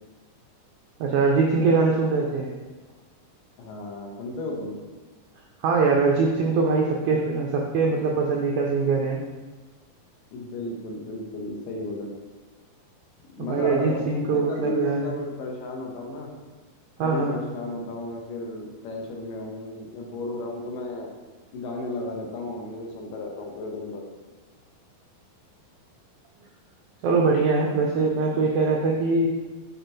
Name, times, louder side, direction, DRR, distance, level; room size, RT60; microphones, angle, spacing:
voice 1, 1.0-2.5 5.6-9.2 13.4-15.1 17.0-17.4 27.0-29.3, right 4 dB, 80° right, -1 dB, 1.7 m, -22 dB
voice 2, 3.6-4.8 10.3-12.1 13.3-16.3 17.0-21.1 21.5-24.0, left 2 dB, 75° left, 0 dB, 2.5 m, -34 dB
6.5 x 5.0 x 4.4 m, 1.3 s
omnidirectional pair, 4.2 m